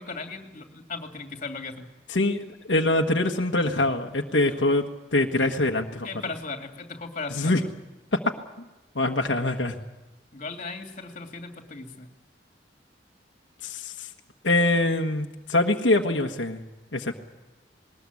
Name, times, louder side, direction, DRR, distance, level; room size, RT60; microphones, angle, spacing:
voice 1, 0.0-1.9 6.0-7.7 10.3-12.1, left 3 dB, 45° left, 4 dB, 2.7 m, -37 dB
voice 2, 2.1-4.9 5.1-6.1 7.3-7.6 8.1-8.2 8.9-9.8 13.6-14.1 14.4-16.6 16.9-17.1, left 2 dB, 90° left, 3 dB, 1.4 m, -24 dB
21.0 x 20.0 x 8.5 m, 1.1 s
head